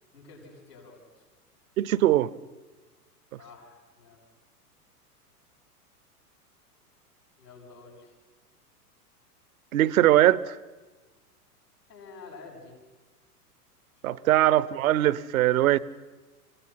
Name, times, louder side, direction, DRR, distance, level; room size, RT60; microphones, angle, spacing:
voice 1, 0.1-1.2 3.4-4.2 7.4-8.1 11.9-12.8 14.0-14.3, left 4 dB, 80° left, 7.0 m, -49 dB
voice 2, 1.8-2.3 9.7-10.6 14.0-15.8, right 14 dB, 60° right, 0.9 m, -21 dB
26.0 x 17.5 x 5.9 m
figure-of-eight pair, 95°, 47 cm